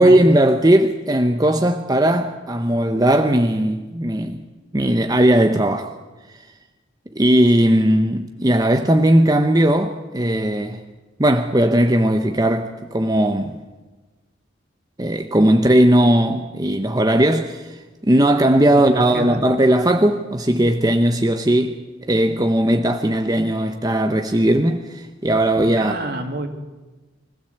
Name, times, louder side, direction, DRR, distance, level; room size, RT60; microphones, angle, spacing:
voice 1, 0.0-4.4 4.7-5.9 7.2-10.8 11.2-13.6 15.0-21.8 22.1-26.0, right 1 dB, 20° right, 0.8 m, -17 dB
voice 2, 18.7-19.4 25.8-26.5, right 1 dB, 55° right, 2.5 m, -28 dB
24.0 x 16.0 x 8.1 m
head